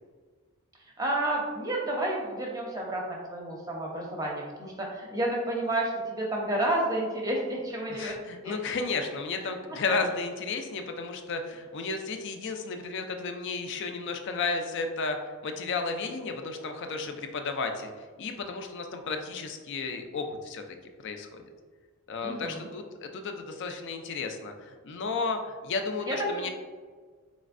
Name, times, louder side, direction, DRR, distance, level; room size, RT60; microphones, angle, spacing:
voice 1, 0.8-8.2 8.4-8.6 9.4-9.5 22.2-22.7 26.0-26.5, right 1 dB, 15° right, -2 dB, 0.6 m, -30 dB
voice 2, 7.9-17.9 18.2-20.6 21.0-21.4 22.1-26.5, left 4 dB, 55° left, 5 dB, 0.4 m, -33 dB
4.3 x 3.1 x 2.5 m, 1.5 s
head